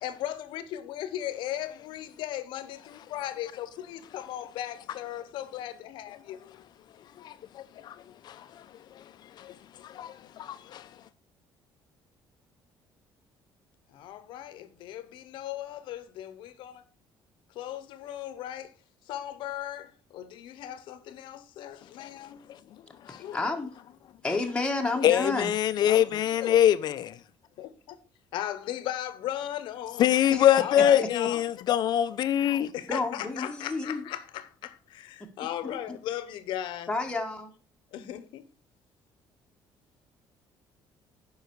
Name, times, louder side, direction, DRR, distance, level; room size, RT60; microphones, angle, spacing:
voice 1, 0.0-6.4 13.9-16.8 17.6-18.7 19.1-19.9 20.1-22.4 23.2-23.4 25.9-26.0 26.4-26.5 27.6-28.0 28.3-30.0 30.6-31.4 32.7-34.2 34.6-36.9 37.9-38.4, left 12 dB, 80° left, 1.0 m, -37 dB
voice 2, 7.2-8.7 8.9-9.0 9.4-10.9 22.0-22.1 22.5-22.6 23.0-23.2 25.0-27.2 29.9-32.7, left 11 dB, 60° left, 0.7 m, -25 dB
voice 3, 23.3-23.8 24.2-25.5 26.1-26.2 30.3-30.5 30.8-30.9 32.9-34.1 35.2-36.0 36.9-37.5, left 3 dB, 10° left, 1.4 m, -31 dB
9.6 x 5.6 x 4.6 m
cardioid pair, 125°, 8 cm